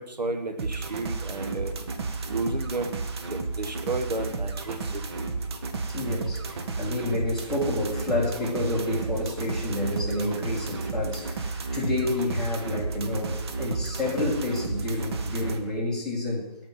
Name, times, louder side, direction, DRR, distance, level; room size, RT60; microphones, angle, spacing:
voice 1, 0.0-1.7 2.3-3.0 3.3-5.3, right 3 dB, 90° right, 5 dB, 1.7 m, -32 dB
sound 1, 0.6-15.6, right 4 dB, 40° right, 1.3 m, -32 dB
voice 2, 5.9-16.5, left 1 dB, ahead, -7 dB, 1.9 m, -29 dB
13.0 x 5.0 x 7.6 m, 0.96 s
figure-of-eight pair, 150°, 21 cm